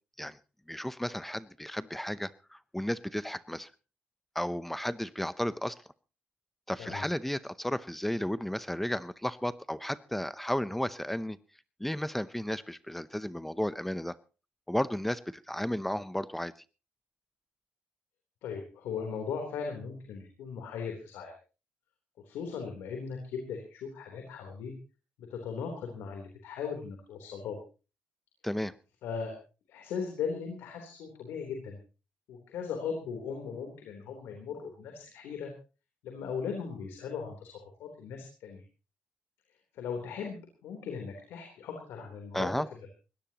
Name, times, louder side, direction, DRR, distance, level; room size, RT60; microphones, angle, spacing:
voice 1, 0.7-3.7 4.3-5.8 6.7-11.4 11.8-14.2 14.7-16.5 28.4-28.7 42.3-42.7, left 1 dB, 5° left, 16 dB, 0.7 m, -33 dB
voice 2, 18.4-21.3 22.2-24.7 25.2-27.6 29.0-29.4 29.7-31.8 32.3-35.5 36.0-38.6 39.7-42.5, left 6 dB, 90° left, 3 dB, 3.5 m, -38 dB
21.5 x 17.5 x 2.9 m, 0.34 s
cardioid pair, 105°, 4 cm